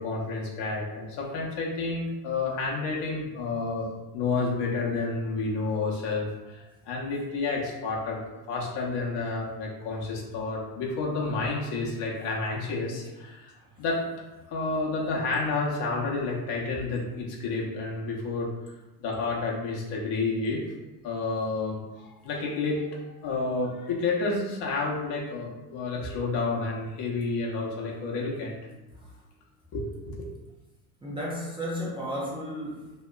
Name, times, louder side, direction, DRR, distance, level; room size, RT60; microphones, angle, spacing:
voice 1, 0.0-3.9 4.1-8.2 8.5-14.0 14.5-18.5 19.0-20.6 21.0-28.6 29.7-30.3, left 3 dB, 55° left, -3 dB, 0.8 m, -30 dB
voice 2, 13.5-13.8 28.9-29.2 31.0-32.9, equal, 10° right, -6 dB, 0.6 m, -34 dB
2.9 x 2.1 x 2.3 m, 1.1 s
hypercardioid pair, 75°, 49 cm